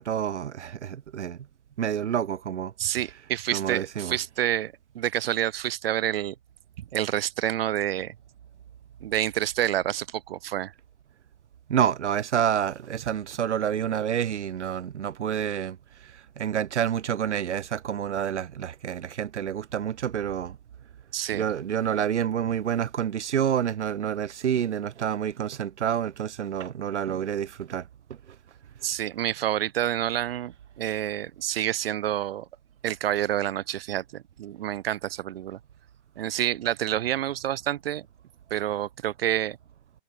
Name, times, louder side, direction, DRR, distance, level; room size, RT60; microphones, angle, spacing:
voice 1, 0.0-1.4 1.8-2.7 3.5-4.2 11.7-15.8 16.4-20.6 21.3-27.9, right 9 dB, 85° right, 2.3 m, -28 dB
voice 2, 2.8-6.3 6.8-8.1 9.0-10.7 21.1-21.5 28.8-32.5 32.8-35.6 36.2-38.1 38.5-39.6, right 12 dB, 60° right, 2.5 m, -28 dB
hypercardioid pair, 160°, 34 cm